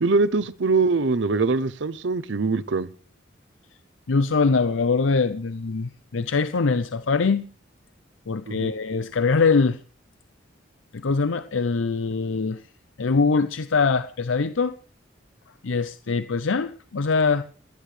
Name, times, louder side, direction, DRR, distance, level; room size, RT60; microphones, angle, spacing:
voice 1, 0.0-2.9 8.5-8.7, right 3 dB, 65° right, 0.7 m, -23 dB
voice 2, 4.1-7.4 8.3-9.8 10.9-12.6 13.0-14.7 15.6-17.4, left 4 dB, 90° left, 0.6 m, -23 dB
30.0 x 10.0 x 3.3 m
head